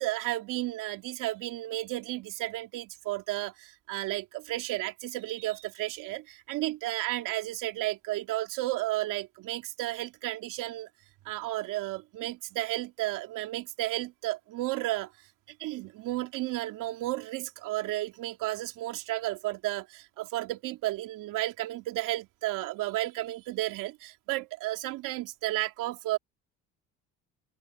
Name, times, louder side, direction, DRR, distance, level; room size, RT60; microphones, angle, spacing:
voice 1, 0.0-10.9 11.2-15.1 15.6-26.2, right 17 dB, 75° right, 2.6 m, -33 dB
open air
supercardioid pair, 90°, 32 cm